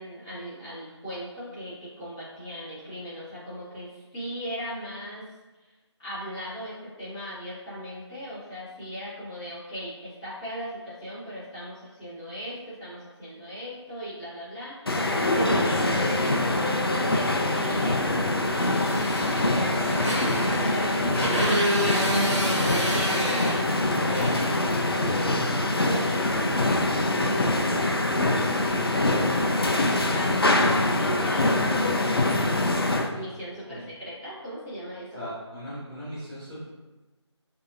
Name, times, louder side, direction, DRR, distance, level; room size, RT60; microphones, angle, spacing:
voice 1, 0.0-5.2 6.0-20.1 20.7-24.4 24.9-26.8 27.1-27.9 28.9-29.5 29.9-32.7 33.1-35.3, equal, 10° left, -14 dB, 1.4 m, -38 dB
sound 1, 14.9-33.1, left 2 dB, 55° left, 0.5 m, -24 dB
Motorcycle, 18.5-25.2, right 1 dB, 85° right, 1.3 m, -29 dB
voice 2, 35.1-36.7, equal, 5° right, -17 dB, 0.6 m, -38 dB
6.3 x 2.8 x 2.4 m, 1.1 s
figure-of-eight pair, 160°, 15 cm